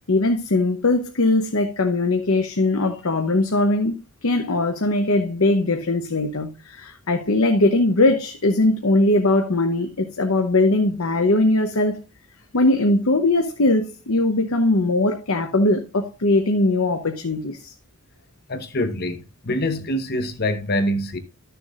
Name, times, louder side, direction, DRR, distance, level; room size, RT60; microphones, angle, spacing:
voice 1, 0.1-4.0 4.2-12.0 12.5-17.7, left 2 dB, 70° left, 0.9 m, -20 dB
voice 2, 18.5-21.2, left 1 dB, 45° left, 1.0 m, -25 dB
13.0 x 6.8 x 2.5 m
head